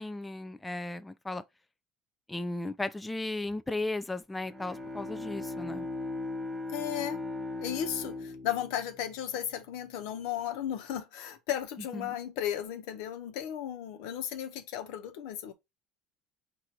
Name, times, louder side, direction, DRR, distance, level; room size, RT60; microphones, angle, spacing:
voice 1, 0.0-1.4 2.3-5.9 12.0-12.2, left 2 dB, 10° left, 0.3 m, -35 dB
Bowed string instrument, 4.4-9.9, left 2 dB, 10° right, 1.2 m, -39 dB
voice 2, 6.7-7.2 7.6-15.5, left 10 dB, 80° left, 1.0 m, -35 dB
4.4 x 2.6 x 4.6 m
cardioid pair, 120°, 0 cm